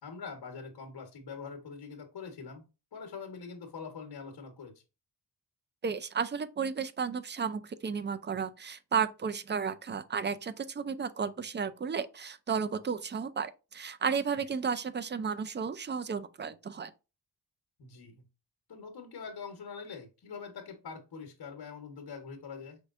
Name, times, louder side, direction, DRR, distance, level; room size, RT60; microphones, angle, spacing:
voice 1, 0.0-2.7 2.9-4.8 14.4-14.5 17.8-18.3 18.7-22.8, left 5 dB, 60° left, 1.1 m, -44 dB
voice 2, 5.8-16.9, right 6 dB, 25° right, 0.4 m, -33 dB
5.3 x 3.4 x 2.4 m
cardioid pair, 90°, 43 cm